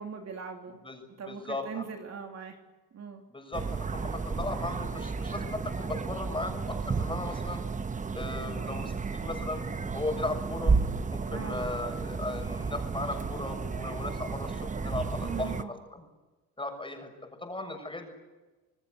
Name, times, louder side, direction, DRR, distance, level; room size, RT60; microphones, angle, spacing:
voice 1, 0.0-0.8 1.2-2.6 2.9-3.2 11.3-11.6 15.2-15.7, right 6 dB, 40° right, 2 dB, 3.2 m, -40 dB
voice 2, 0.8-1.8 3.3-7.6 8.1-9.7 9.9-10.7 11.1-16.1 16.6-17.1 17.4-18.1, left 2 dB, 10° left, 4 dB, 7.2 m, -37 dB
sound 1, 3.5-15.6, right 4 dB, 20° right, 1.1 m, -32 dB
28.0 x 20.0 x 8.2 m, 1.1 s
supercardioid pair, 95°, 41 cm